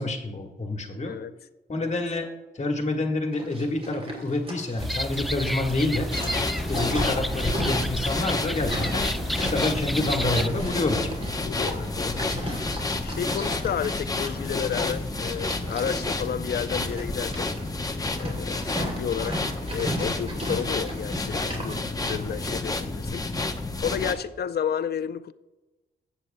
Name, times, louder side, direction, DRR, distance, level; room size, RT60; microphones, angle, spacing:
voice 1, 0.0-1.1 1.7-2.3 2.5-6.1 6.7-9.1 9.4-11.1, left 2 dB, 40° left, 1.5 m, -28 dB
Livestock farm animals working animals, 3.3-22.6, right 1 dB, 35° right, 2.8 m, -37 dB
sound 1, 4.8-10.5, equal, ahead, 0.3 m, -31 dB
sound 2, 6.1-24.1, left 2 dB, 20° left, 0.8 m, -30 dB
voice 2, 6.8-7.1 11.4-12.5 13.0-17.5 18.1-19.4 19.7-23.3 23.8-25.3, left 8 dB, 60° left, 0.5 m, -32 dB
16.0 x 8.1 x 2.2 m
cardioid pair, 75°, 18 cm